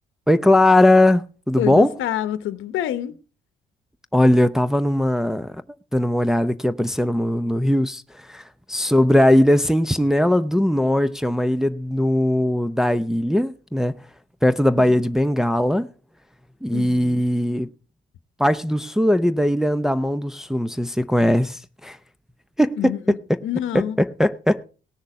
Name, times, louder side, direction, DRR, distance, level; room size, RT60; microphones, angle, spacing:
voice 1, 0.3-2.0 4.1-5.6 5.9-14.1 14.4-15.9 16.6-17.7 18.4-22.0 22.6-23.4 23.7-24.7, left 1 dB, ahead, 0.6 m, -19 dB
voice 2, 1.6-3.1 14.8-14.9 16.7-17.2 22.8-23.2 23.4-24.0, left 11 dB, 80° left, 0.8 m, -27 dB
18.5 x 6.6 x 4.7 m
cardioid pair, 90°, 20 cm